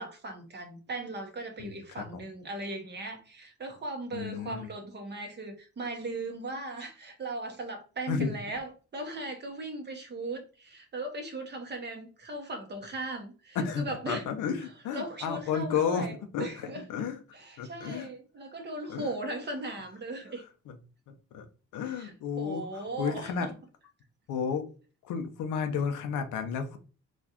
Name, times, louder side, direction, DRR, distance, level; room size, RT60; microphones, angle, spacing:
voice 1, 0.0-14.2 14.6-17.0 17.3-20.4 21.8-23.5, right 2 dB, 35° right, 1.0 m, -38 dB
voice 2, 4.1-4.7 8.1-8.4 13.6-17.2 17.6-18.1 18.9-19.1 20.7-20.8 21.3-21.4 21.7-22.6 23.0-23.5 24.3-24.7 25.0-26.8, left 6 dB, 85° left, 0.7 m, -32 dB
4.1 x 2.5 x 2.9 m
cardioid pair, 90°, 30 cm